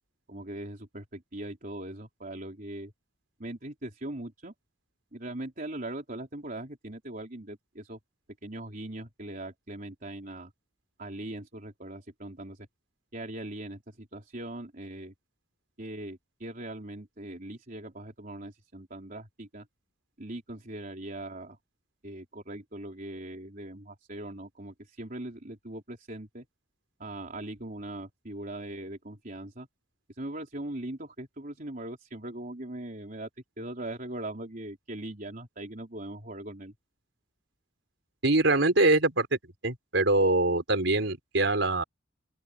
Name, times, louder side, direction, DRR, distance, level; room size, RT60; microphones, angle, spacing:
voice 1, 0.3-2.9 3.4-4.5 5.1-8.0 8.4-10.5 11.0-12.7 13.1-15.1 15.8-19.7 20.2-21.6 22.0-26.5 27.0-29.7 30.1-33.3 33.6-36.7, right 1 dB, 45° right, 3.8 m, -40 dB
voice 2, 38.2-39.4 39.6-41.8, right 2 dB, 75° right, 4.4 m, -24 dB
open air
head